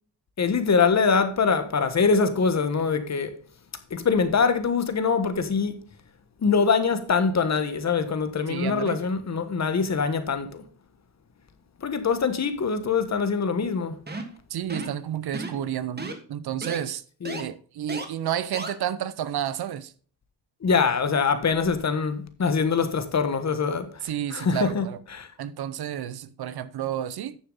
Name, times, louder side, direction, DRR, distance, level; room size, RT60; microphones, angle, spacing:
voice 1, 0.4-3.3 3.9-5.8 6.4-10.6 11.8-14.0 17.2-17.5 20.6-24.8 25.1-25.3, left 5 dB, 40° left, 1.3 m, -24 dB
voice 2, 8.5-9.0 14.5-17.0 17.4-19.9 24.0-25.0 25.4-27.4, right 10 dB, 60° right, 0.7 m, -31 dB
sound 1, 14.1-14.4 14.7-15.0 15.3-15.7 16.0-16.2 16.6-16.8 17.3-17.4 17.9-18.1 18.5-18.7, right 3 dB, 20° right, 1.6 m, -34 dB
9.7 x 6.8 x 3.9 m
cardioid pair, 110°, 44 cm